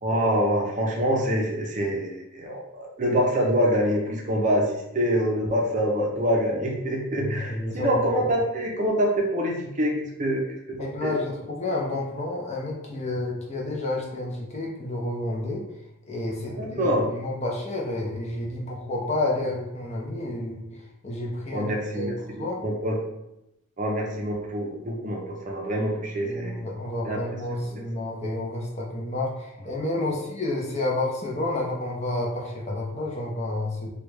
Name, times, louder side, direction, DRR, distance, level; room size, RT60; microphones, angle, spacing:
voice 1, 0.0-11.1 16.4-17.1 21.5-23.0 23.8-26.6 27.0-27.2 27.7-27.8 30.0-30.1, equal, 35° right, -1 dB, 0.5 m, -26 dB
voice 2, 7.2-8.0 10.8-15.6 16.1-22.1 22.4-22.6 26.2-33.9, left 2 dB, 30° left, -2 dB, 0.6 m, -30 dB
3.1 x 2.3 x 3.1 m, 0.85 s
head